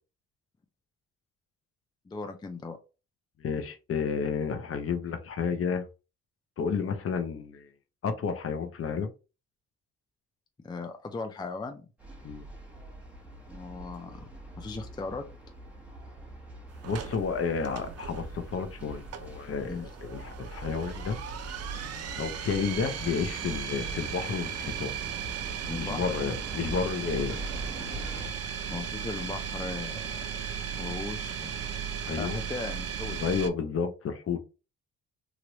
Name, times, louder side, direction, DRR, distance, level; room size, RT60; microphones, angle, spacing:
voice 1, 2.1-2.8 10.6-11.9 13.5-14.3 14.6-15.3 19.7-19.9 25.7-26.0 28.7-30.2 30.8-31.5 32.1-33.2, left 3 dB, 15° left, 0.5 m, -37 dB
voice 2, 3.4-5.8 6.6-7.7 8.0-9.1 12.2-12.5 16.8-21.2 22.2-24.9 25.8-27.4 32.1-32.4 33.2-34.4, left 6 dB, 50° left, 0.8 m, -31 dB
sound 1, 12.0-28.3, right 1 dB, 5° right, 1.2 m, -43 dB
sound 2, 16.8-33.5, right 8 dB, 55° right, 0.6 m, -36 dB
3.2 x 2.5 x 3.0 m
cardioid pair, 90°, 30 cm